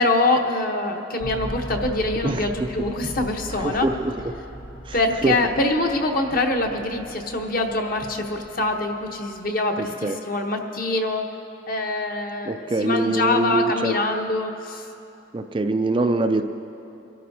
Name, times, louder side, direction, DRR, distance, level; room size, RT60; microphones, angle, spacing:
voice 1, 0.0-3.9 4.9-11.3 11.7-12.5 12.8-14.9, left 2 dB, 45° left, 3 dB, 1.0 m, -24 dB
sound 1, 1.2-9.5, equal, 60° left, 1.6 m, -38 dB
voice 2, 3.5-4.1 4.8-5.3 9.8-10.2 12.5-14.0 15.3-16.4, right 2 dB, 25° right, 7 dB, 0.3 m, -24 dB
24.5 x 12.5 x 2.8 m, 2.8 s
head